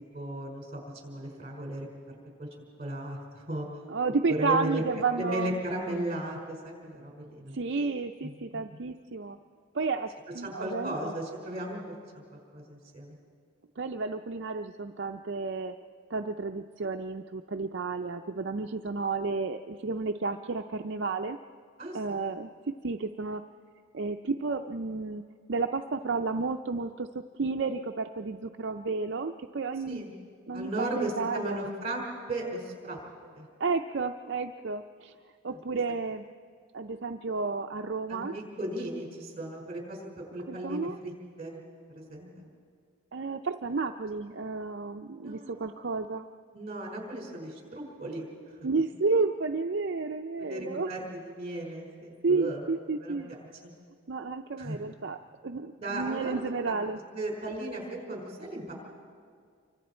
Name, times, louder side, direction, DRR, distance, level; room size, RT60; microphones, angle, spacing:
voice 1, 0.1-1.9 2.4-2.5 2.8-3.7 4.3-4.8 5.2-7.6 8.2-8.8 10.4-11.8 12.1-12.2 12.5-13.1 21.8-22.2 29.9-30.1 30.5-32.0 32.3-33.0 33.3-33.5 35.5-35.6 38.1-40.1 40.3-41.1 41.4-41.6 41.9-42.5 45.2-45.5 46.5-48.6 50.4-52.6 53.0-53.7 54.6-54.8 55.8-56.8 57.1-58.7, right 1 dB, 30° right, -1 dB, 4.8 m, -36 dB
voice 2, 3.9-5.6 7.5-9.4 9.7-11.2 13.8-15.7 16.1-21.4 21.9-23.4 23.9-25.2 25.5-30.0 30.5-31.7 33.6-35.1 35.4-36.2 36.7-38.3 40.5-41.0 43.1-46.3 48.6-50.9 52.2-53.4 54.1-55.2 55.4-57.0, right 4 dB, 60° right, 5 dB, 0.5 m, -31 dB
28.0 x 24.5 x 4.4 m, 2.1 s
head